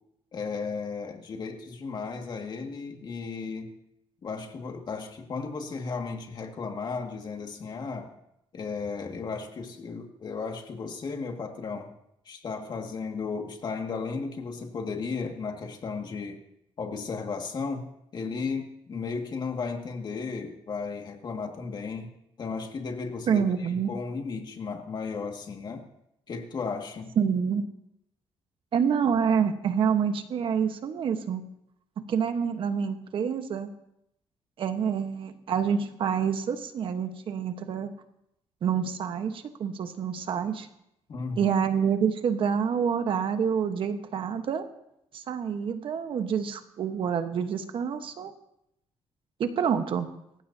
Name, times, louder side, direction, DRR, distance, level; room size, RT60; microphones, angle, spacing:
voice 1, 0.3-3.7 4.2-8.1 8.5-11.9 12.3-16.4 16.8-22.1 22.4-25.8 26.3-27.2 41.1-41.5, left 4 dB, 45° left, 3 dB, 2.1 m, -35 dB
voice 2, 23.3-23.9 27.2-27.7 28.7-31.4 32.1-33.7 34.6-37.9 38.6-40.7 41.4-44.6 45.1-48.3 49.4-50.1, right 7 dB, 60° right, 8 dB, 1.2 m, -27 dB
25.5 x 15.0 x 2.8 m, 0.79 s
cardioid pair, 130°, 10 cm